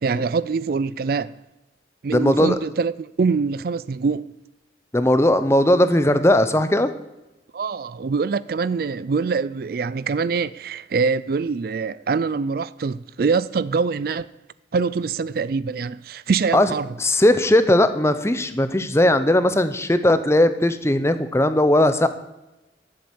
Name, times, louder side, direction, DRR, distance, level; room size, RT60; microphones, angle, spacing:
voice 1, 0.0-1.4 2.0-4.3 7.5-14.3 14.7-16.9, right 5 dB, 55° right, 0.4 m, -24 dB
voice 2, 2.1-2.6 4.9-6.9 16.5-16.7 17.0-22.1, left 1 dB, 15° left, 0.8 m, -18 dB
12.5 x 7.7 x 8.7 m
head